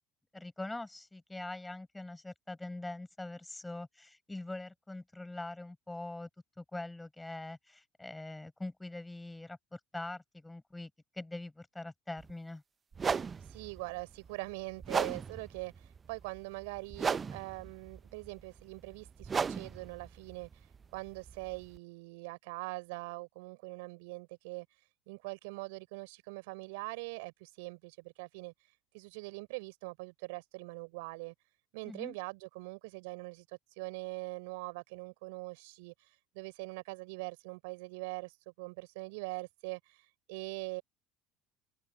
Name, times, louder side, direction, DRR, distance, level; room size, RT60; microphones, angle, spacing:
voice 1, 0.3-6.3 6.6-10.9 11.1-12.6 31.8-32.1, left 2 dB, 10° left, 7.9 m, -43 dB
sound 1, 12.2-12.3 12.9-21.8, right 5 dB, 30° right, 0.6 m, -37 dB
voice 2, 13.4-31.3 31.7-40.8, right 26 dB, 75° right, 6.6 m, -43 dB
hypercardioid pair, 70°, 0 cm